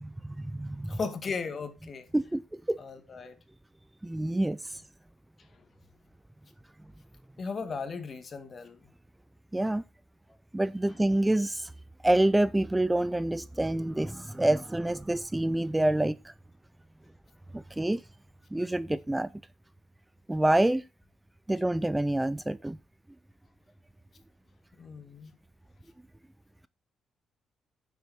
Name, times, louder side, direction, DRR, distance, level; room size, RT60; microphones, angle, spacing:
voice 1, 0.0-1.0 2.1-2.4 2.7-2.8 4.0-4.8 9.5-9.8 10.5-11.7 12.0-16.3 17.5-18.0 18.5-19.3 20.3-20.8 21.5-22.8, right 1 dB, 10° right, 0.4 m, -27 dB
voice 2, 0.9-2.1 2.8-3.4 5.4-5.7 7.4-8.8 24.8-25.3, left 4 dB, 40° left, 2.1 m, -37 dB
9.5 x 7.5 x 4.3 m
cardioid pair, 90°, 0 cm